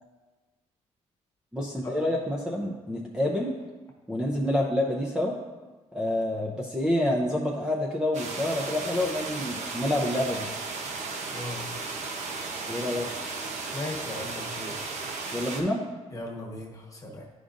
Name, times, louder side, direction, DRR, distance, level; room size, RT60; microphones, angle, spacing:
voice 1, 1.5-3.6 4.1-5.3 5.9-10.5 12.7-13.1 15.3-15.8, left 1 dB, 5° right, -2 dB, 0.6 m, -28 dB
sound 1, 8.1-15.6, right 4 dB, 75° right, 0.8 m, -35 dB
voice 2, 11.3-11.7 13.7-14.8 16.1-17.3, left 2 dB, 25° left, 0 dB, 1.2 m, -37 dB
10.5 x 5.0 x 2.6 m, 1.3 s
cardioid pair, 120°, 12 cm